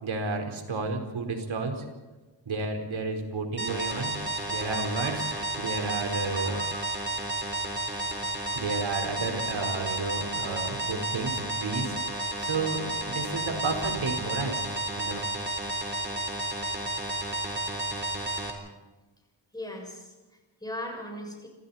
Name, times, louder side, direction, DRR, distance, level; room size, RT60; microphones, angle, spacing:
voice 1, 0.0-1.8 2.4-4.2 4.5-6.9 8.5-14.6 15.0-15.2, right 3 dB, 75° right, 4 dB, 4.7 m, -32 dB
sound 1, 3.6-18.5, right 1 dB, 20° right, 4.0 m, -32 dB
voice 2, 19.5-21.5, left 1 dB, 10° left, 0 dB, 6.8 m, -38 dB
30.0 x 27.0 x 4.4 m, 1.2 s
wide cardioid pair, 180°, 47 cm